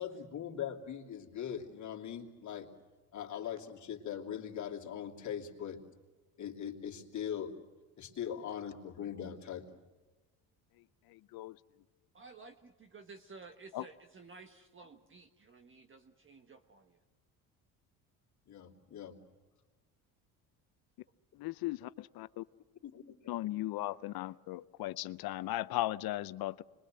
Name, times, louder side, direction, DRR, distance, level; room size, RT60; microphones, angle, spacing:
voice 1, 0.0-2.7 3.1-5.8 6.4-7.5 8.0-9.6 18.5-19.2 22.8-23.2, left 9 dB, 45° left, 3.0 m, -41 dB
voice 2, 11.1-11.6 13.7-13.9 21.3-22.4 23.3-26.6, left 16 dB, 65° left, 0.7 m, -37 dB
voice 3, 12.1-17.0, right 4 dB, 30° right, 1.4 m, -54 dB
26.0 x 22.5 x 7.7 m
cardioid pair, 100°, 40 cm